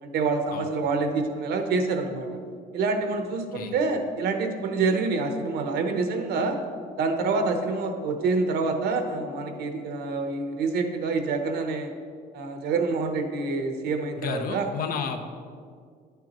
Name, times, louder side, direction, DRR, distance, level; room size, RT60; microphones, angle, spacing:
voice 1, 0.0-2.3 2.7-6.6 7.0-11.9 12.3-14.7, right 3 dB, 75° right, 5 dB, 0.9 m, -27 dB
voice 2, 14.2-15.2, left 6 dB, 60° left, 7 dB, 0.8 m, -32 dB
10.5 x 6.9 x 3.0 m, 2.1 s
cardioid pair, 110°, 17 cm